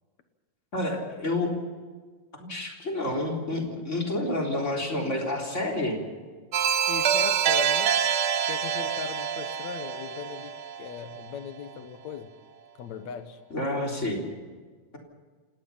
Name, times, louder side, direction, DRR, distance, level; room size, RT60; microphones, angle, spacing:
voice 1, 0.7-1.5 2.4-6.0 13.5-14.2, left 1 dB, 25° left, 0 dB, 3.9 m, -29 dB
sound 1, 6.5-11.3, right 8 dB, 65° right, 1.4 m, -26 dB
voice 2, 6.9-8.0 8.5-12.3 12.8-13.4, left 7 dB, 70° left, 9 dB, 2.5 m, -38 dB
27.0 x 19.0 x 5.7 m, 1.4 s
omnidirectional pair, 3.4 m